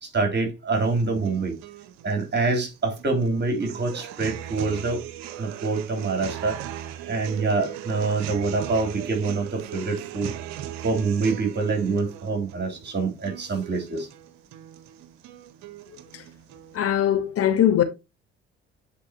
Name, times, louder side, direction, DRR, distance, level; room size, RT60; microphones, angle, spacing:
voice 1, 0.0-1.6 2.0-5.0 5.4-6.6 7.1-10.3 10.8-14.1, right 3 dB, 35° right, 3.6 m, -25 dB
sound 1, 0.8-16.8, right 11 dB, 70° right, 1.0 m, -39 dB
voice 2, 16.7-17.8, left 10 dB, 55° left, 1.2 m, -21 dB
10.0 x 4.6 x 2.9 m
hypercardioid pair, 50°, 29 cm